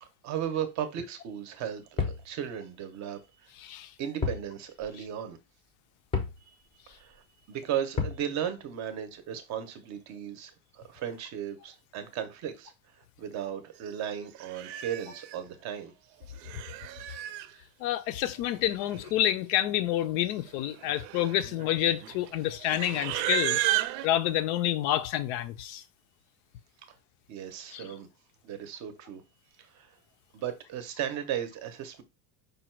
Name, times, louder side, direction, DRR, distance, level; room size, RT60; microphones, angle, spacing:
voice 1, 0.0-3.5 4.0-5.4 6.5-6.6 6.9-15.9 27.3-28.1 28.4-29.2 29.6-29.9 30.3-32.0, right 9 dB, 35° right, 0.7 m, -36 dB
sound 1, 2.0-2.3 4.2-4.5 4.8-4.9 6.1-6.4 8.0-8.3, left 5 dB, 10° left, 0.5 m, -30 dB
Livestock farm animals working animals, 13.9-14.0 14.4-15.4 16.2-17.5 18.6-18.7 18.8-19.3 19.6-19.8 20.5-24.1, right 14 dB, 75° right, 0.6 m, -33 dB
voice 2, 17.8-23.6 24.0-25.8 27.7-27.9, left 12 dB, 60° left, 0.6 m, -28 dB
5.2 x 2.3 x 4.3 m
cardioid pair, 155°, 50 cm